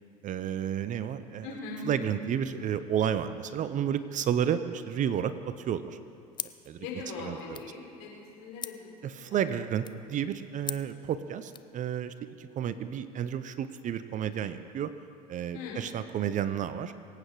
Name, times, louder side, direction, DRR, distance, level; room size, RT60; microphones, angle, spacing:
voice 1, 0.2-1.5 1.8-6.0 6.7-6.9 7.2-7.6 9.0-14.9 15.3-16.9, right 9 dB, 40° right, 13 dB, 0.7 m, -31 dB
voice 2, 1.4-1.8 6.8-8.1 8.4-9.0 9.3-9.4 15.5-15.8, left 4 dB, 65° left, -2 dB, 4.3 m, -40 dB
sound 1, 6.3-11.7, left 7 dB, 20° left, 0.5 m, -44 dB
23.5 x 8.8 x 4.8 m, 2.4 s
hypercardioid pair, 80°, 20 cm